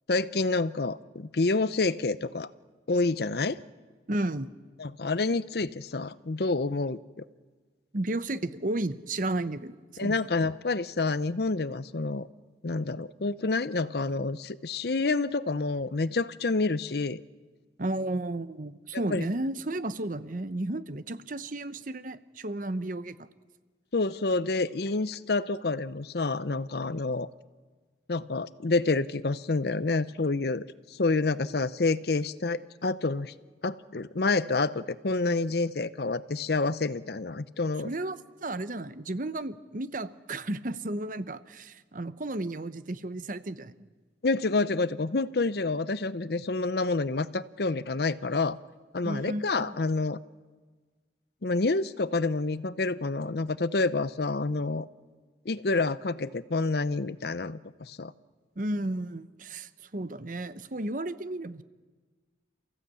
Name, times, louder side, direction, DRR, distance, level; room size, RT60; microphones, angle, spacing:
voice 1, 0.1-2.5 2.9-3.6 4.8-7.2 10.0-12.3 12.6-17.2 19.1-19.3 23.9-27.3 28.1-33.3 33.6-37.9 44.2-48.6 48.9-50.2 51.4-54.9 55.4-58.1, left 3 dB, 60° left, 16 dB, 0.7 m, -28 dB
voice 2, 4.1-4.5 7.9-9.7 10.0-10.2 17.8-23.2 37.8-43.9 49.0-49.5 58.6-61.6, right 1 dB, 45° right, 13 dB, 0.9 m, -33 dB
29.0 x 15.5 x 8.4 m, 1.4 s
head